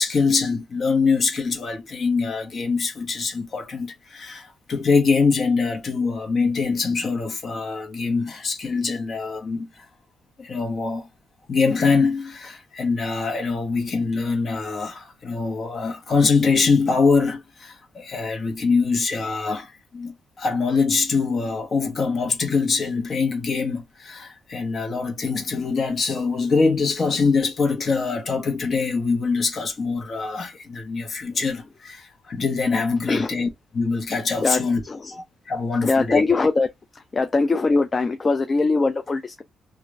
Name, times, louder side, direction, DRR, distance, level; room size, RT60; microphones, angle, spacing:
voice 1, 0.0-9.9 10.4-11.1 11.5-34.8 35.1-36.2, left 4 dB, 50° left, 1.1 m, -23 dB
voice 2, 34.4-35.1 35.8-36.7 36.9-39.4, left 3 dB, 35° left, 0.4 m, -22 dB
2.9 x 2.5 x 2.5 m
cardioid pair, 85°, 0 cm